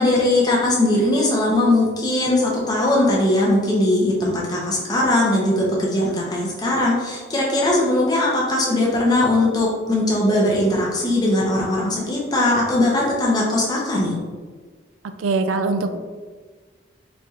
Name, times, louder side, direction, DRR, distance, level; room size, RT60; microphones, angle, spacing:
voice 1, 0.0-14.2, left 1 dB, 20° left, -4 dB, 0.6 m, -20 dB
voice 2, 15.2-16.0, right 3 dB, 90° right, 8 dB, 0.3 m, -22 dB
4.1 x 2.8 x 2.4 m, 1.5 s
head